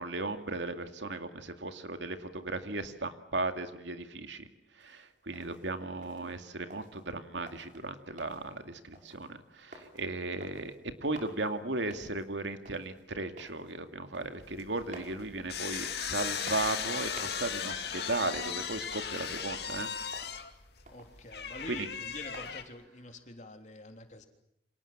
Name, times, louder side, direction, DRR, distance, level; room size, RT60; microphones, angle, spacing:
voice 1, 0.0-4.5 4.8-10.8 11.0-19.9, right 2 dB, 75° right, 8 dB, 2.4 m, -36 dB
sound 1, 4.8-22.8, right 1 dB, 45° right, 5.8 m, -55 dB
sound 2, 14.4-22.6, left 7 dB, 60° left, 2.5 m, -37 dB
voice 2, 20.9-24.2, left 2 dB, 40° left, 5 dB, 3.3 m, -46 dB
29.0 x 26.5 x 7.5 m, 0.79 s
head